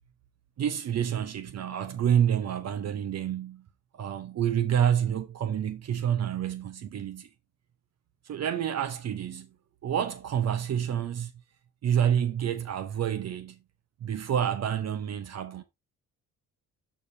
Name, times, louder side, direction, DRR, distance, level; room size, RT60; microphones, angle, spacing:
voice 1, 0.6-3.6 3.9-7.3 8.3-9.5 9.8-11.3 11.8-13.6 14.0-15.6, right 9 dB, 60° right, 0.9 m, -28 dB
12.0 x 5.0 x 2.7 m
cardioid pair, 90°, 30 cm